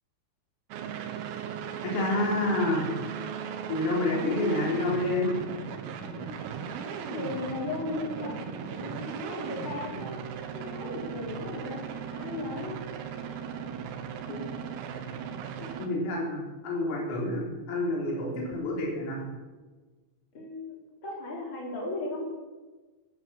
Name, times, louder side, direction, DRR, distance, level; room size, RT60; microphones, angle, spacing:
sound 1, 0.7-15.9, right 7 dB, 90° right, 4.1 m, -37 dB
voice 1, 1.8-2.9 3.7-5.4 14.3-14.5 15.8-19.3, left 2 dB, 80° left, -2 dB, 6.4 m, -28 dB
voice 2, 7.1-8.4 8.7-10.2 10.5-11.8 12.1-12.7 20.3-20.8 21.0-22.2, left 2 dB, 25° left, -2 dB, 4.7 m, -36 dB
14.5 x 12.5 x 7.6 m, 1.3 s
omnidirectional pair, 5.9 m